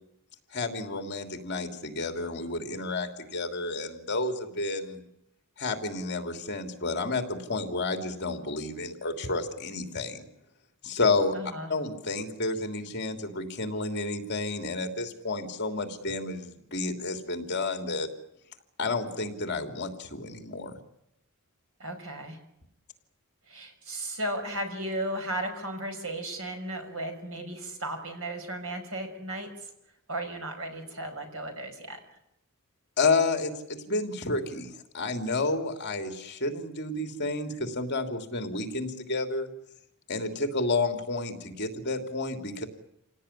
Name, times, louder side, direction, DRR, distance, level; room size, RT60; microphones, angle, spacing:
voice 1, 0.5-5.0 5.6-10.3 10.8-11.3 11.7-18.1 18.8-20.8 33.0-39.5 40.1-42.6, left 3 dB, 50° left, 6 dB, 3.0 m, -30 dB
voice 2, 11.3-11.7 21.8-22.4 23.5-29.7 30.1-32.0, right 1 dB, 65° right, 5 dB, 5.9 m, -35 dB
27.5 x 18.0 x 10.0 m, 0.83 s
head